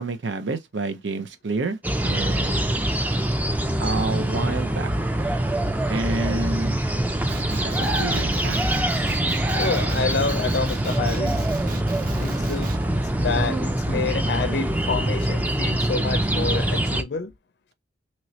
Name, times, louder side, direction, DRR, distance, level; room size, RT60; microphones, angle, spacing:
voice 1, 0.0-2.8 3.8-4.9 5.9-6.8 7.6-8.6, right 3 dB, 85° right, 0.7 m, -29 dB
sound 1, 1.8-17.0, right 1 dB, 10° right, 0.3 m, -24 dB
Male speech man speaking, 7.2-12.9, right 4 dB, 50° right, 0.7 m, -38 dB
voice 2, 9.5-11.4 12.2-17.3, left 4 dB, 65° left, 0.5 m, -28 dB
3.0 x 3.0 x 2.7 m
head